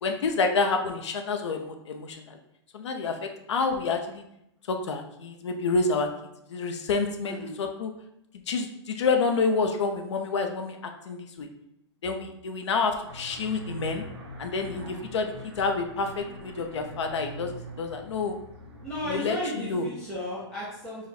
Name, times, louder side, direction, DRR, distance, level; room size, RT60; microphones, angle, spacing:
voice 1, 0.0-2.4 2.7-4.2 4.7-6.1 6.5-7.9 8.5-11.5 12.0-14.0 14.4-17.5 17.8-18.4 19.0-19.9, left 4 dB, 70° left, 5 dB, 0.6 m, -28 dB
voice 2, 7.2-7.6 18.8-21.0, left 1 dB, 5° left, -9 dB, 0.3 m, -34 dB
sound 1, 13.0-19.2, right 1 dB, 60° right, 1.4 m, -43 dB
4.8 x 2.1 x 4.1 m, 0.80 s
hypercardioid pair, 175°, 15 cm